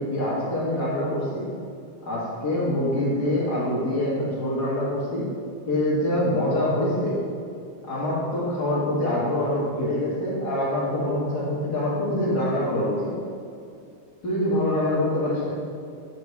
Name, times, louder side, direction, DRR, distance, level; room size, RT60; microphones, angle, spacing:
voice 1, 0.0-1.5 2.1-5.3 5.7-7.2 7.9-13.1 14.2-15.5, left 1 dB, 40° left, -8 dB, 1.7 m, -25 dB
8.1 x 6.8 x 3.3 m, 2.4 s
omnidirectional pair, 3.5 m